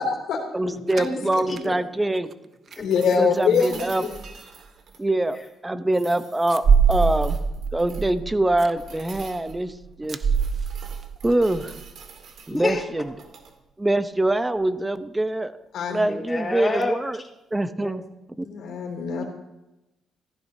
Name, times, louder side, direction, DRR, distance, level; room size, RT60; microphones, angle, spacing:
voice 1, 0.0-0.4 0.9-1.1 1.5-1.6 2.8-3.8 15.7-16.1 18.4-19.2, left 6 dB, 75° left, 1 dB, 2.8 m, -23 dB
voice 2, 0.5-2.3 3.2-4.0 5.0-5.4 5.6-7.4 7.7-10.2 11.2-11.8 12.5-13.1 13.8-15.5 15.9-17.2 17.5-18.0 18.4-18.5, right 1 dB, 15° right, 11 dB, 0.7 m, -24 dB
sound 1, 0.9-1.7 2.2-2.3 2.7-2.8 3.6-3.8 4.1-4.4 4.6-4.7 6.5-12.4 12.7-12.8 13.1-13.2 16.8-16.9, right 6 dB, 45° right, 0.5 m, -25 dB
sound 2, 2.7-5.5 5.9-8.2 8.8-9.6 10.0-12.6 13.1-13.5 15.6-15.7, right 5 dB, 70° right, 1.7 m, -46 dB
voice 3, 12.5-12.8 16.1-16.9 17.8-18.0, left 3 dB, 25° left, -5 dB, 3.1 m, -27 dB
15.0 x 13.5 x 2.8 m, 0.94 s
cardioid pair, 90°, 0 cm